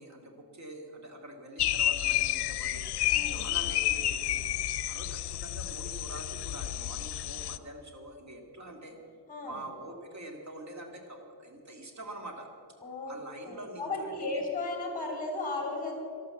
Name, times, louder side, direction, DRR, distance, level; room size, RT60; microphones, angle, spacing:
voice 1, 0.0-2.9 3.3-9.0 9.4-12.5 13.1-14.4, right 1 dB, 40° right, 2 dB, 2.4 m, -45 dB
sound 1, 1.6-7.6, left 13 dB, 65° left, 0.6 m, -30 dB
voice 2, 3.1-3.5 9.3-9.6 12.8-15.9, left 3 dB, 20° left, 2 dB, 3.5 m, -35 dB
13.0 x 12.0 x 7.7 m, 2.4 s
wide cardioid pair, 170°, 42 cm